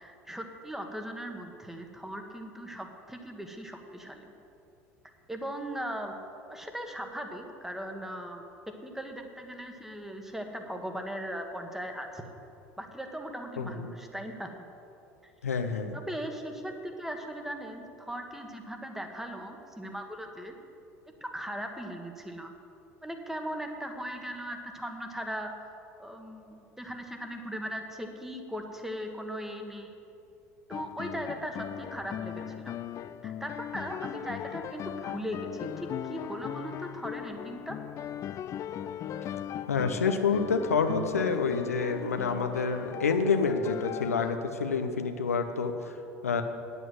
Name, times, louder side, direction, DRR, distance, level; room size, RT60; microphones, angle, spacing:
voice 1, 0.0-4.3 5.3-6.2 6.5-12.2 12.8-14.5 15.2-15.3 15.9-20.5 21.2-22.5 23.0-25.5 26.0-29.9 30.7-32.7 33.2-37.8, equal, 5° right, 4 dB, 1.4 m, -38 dB
voice 2, 13.6-13.9 15.4-16.0 39.7-45.9 46.2-46.4, left 5 dB, 90° left, 6 dB, 0.7 m, -28 dB
sound 1, 30.7-44.4, left 10 dB, 40° left, 0.4 m, -38 dB
9.2 x 8.1 x 7.8 m, 2.7 s
hypercardioid pair, 75°, 8 cm